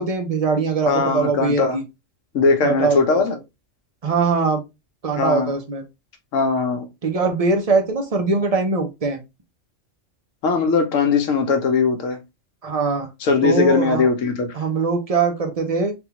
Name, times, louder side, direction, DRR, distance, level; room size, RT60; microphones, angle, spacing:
voice 1, 0.0-1.8 2.6-3.2 4.0-4.6 5.0-5.8 7.0-9.2 12.6-13.1 13.4-14.1 14.5-15.9, right 4 dB, 40° right, 0.5 m, -21 dB
voice 2, 0.9-1.8 2.3-3.3 5.2-5.5 6.3-6.9 10.4-12.2 13.2-14.5, left 4 dB, 85° left, 1.1 m, -19 dB
3.4 x 2.3 x 2.8 m
omnidirectional pair, 1.3 m